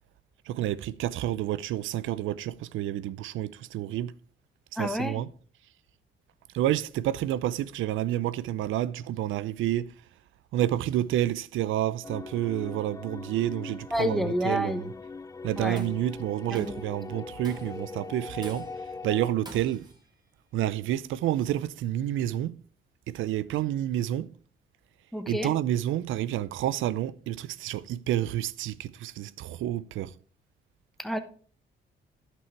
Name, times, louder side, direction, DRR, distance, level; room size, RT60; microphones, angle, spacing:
voice 1, 0.5-4.1 4.8-5.3 6.5-9.9 10.5-14.8 15.4-18.7 19.0-19.9 20.5-22.6 23.1-24.3 25.3-30.1, right 13 dB, 80° right, 0.5 m, -29 dB
voice 2, 4.8-5.2 13.9-14.9 15.6-15.9 16.5-16.8 25.1-25.5 31.0-31.2, equal, ahead, 1.2 m, -29 dB
sound 1, 12.0-19.3, left 4 dB, 15° left, 0.4 m, -41 dB
Tools, 15.5-16.1 16.5-16.9 17.4-17.9 18.4-18.9 19.5-20.0, right 2 dB, 20° right, 1.8 m, -47 dB
11.0 x 6.1 x 4.5 m
cardioid pair, 90°, 20 cm